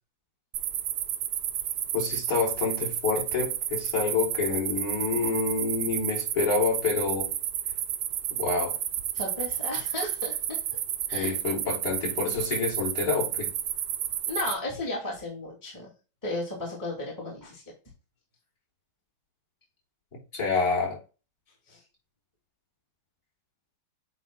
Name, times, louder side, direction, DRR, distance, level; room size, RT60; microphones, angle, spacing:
sound 1, 0.5-14.5, right 11 dB, 75° right, 0.9 m, -31 dB
voice 1, 1.9-7.3 8.3-8.7 11.1-13.5 20.3-21.0, left 4 dB, 40° left, -6 dB, 3.9 m, -28 dB
voice 2, 9.1-10.6 11.1-11.3 14.3-15.9 16.2-17.6 21.7-21.8, left 2 dB, 10° left, -5 dB, 2.0 m, -34 dB
8.9 x 3.3 x 3.7 m, 0.33 s
omnidirectional pair, 2.4 m